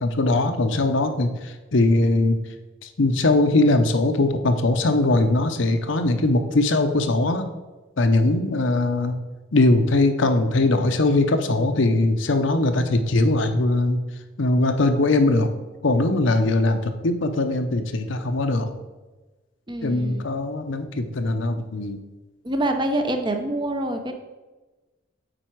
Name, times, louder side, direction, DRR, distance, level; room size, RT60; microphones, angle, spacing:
voice 1, 0.0-2.4 3.0-7.4 8.0-9.2 9.5-14.0 14.4-15.5 15.8-18.7 19.8-22.0, left 2 dB, 70° left, 8 dB, 0.7 m, -21 dB
voice 2, 19.7-20.3 22.4-24.1, right 1 dB, 25° right, 5 dB, 0.7 m, -26 dB
8.9 x 4.5 x 4.6 m, 1.2 s
head